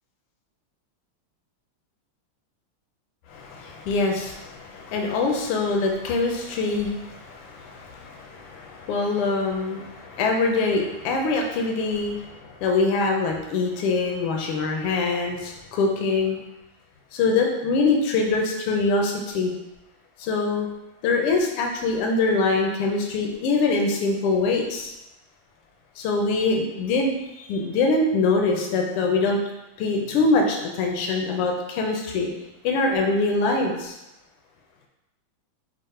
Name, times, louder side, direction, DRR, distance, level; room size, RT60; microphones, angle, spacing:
voice 1, 3.3-16.4 17.1-19.5 20.2-20.7 21.0-24.9 26.0-29.4 29.8-32.3 32.6-34.0, left 3 dB, 85° left, 2 dB, 1.6 m, -24 dB
5.2 x 2.1 x 4.2 m, 0.94 s
omnidirectional pair, 2.4 m